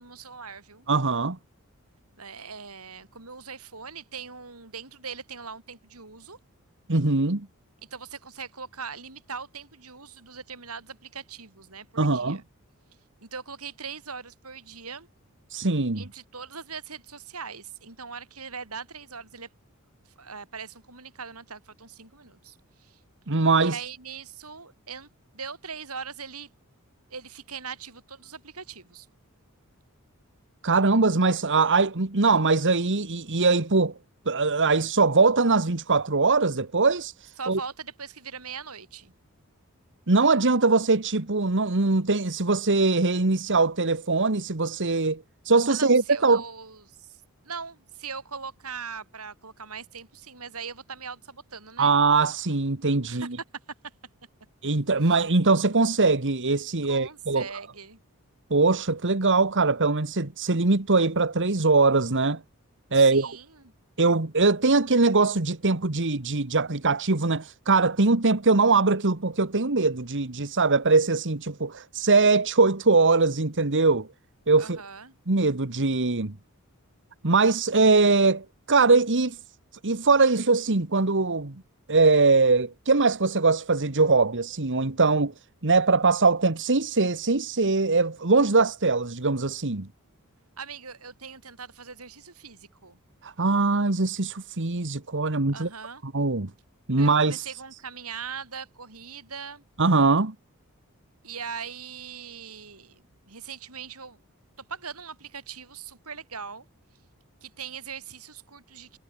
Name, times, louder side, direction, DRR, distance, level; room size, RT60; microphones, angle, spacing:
voice 1, 0.0-0.9 2.2-6.4 7.9-12.4 13.2-15.1 16.0-19.5 20.2-23.0 23.6-26.5 27.1-29.1 37.4-39.1 45.7-51.9 53.1-53.3 54.9-55.2 56.9-58.0 62.9-63.7 74.6-75.1 90.6-93.0 95.5-96.0 97.0-99.6 101.2-103.0 103.3-104.2 104.7-106.7 107.4-109.0, right 6 dB, 75° right, 7.3 m, -40 dB
voice 2, 0.9-1.4 6.9-7.5 12.0-12.4 15.5-16.0 23.3-23.8 30.6-33.9 34.2-37.6 40.1-46.4 51.8-53.4 54.6-57.4 58.5-62.4 62.9-63.4 64.0-74.1 74.5-74.8 75.3-76.3 77.2-79.4 79.8-81.6 81.9-85.3 85.6-89.9 93.2-95.7 96.0-96.5 96.9-97.5 99.8-100.3, right 3 dB, 55° right, 1.6 m, -22 dB
head